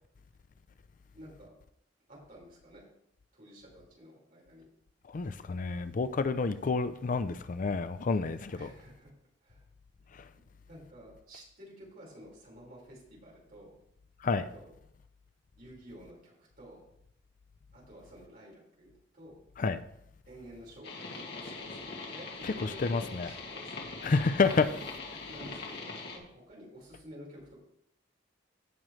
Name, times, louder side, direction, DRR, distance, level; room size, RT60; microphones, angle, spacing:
voice 1, 1.1-1.6 2.1-2.8 3.3-4.7 8.5-9.1 9.4-9.6 10.7-13.7 14.5-14.7 15.6-16.8 17.7-19.4 20.3-23.9 25.3-27.6, right 1 dB, 50° right, 4.6 m, -51 dB
voice 2, 5.1-8.7 10.1-10.2 14.2-14.5 19.6-19.8 22.4-22.5 22.8-23.3 24.0-24.7, left 4 dB, 45° left, 0.4 m, -29 dB
sound 1, 20.8-26.2, left 3 dB, 60° left, 2.0 m, -42 dB
16.5 x 6.3 x 3.2 m
head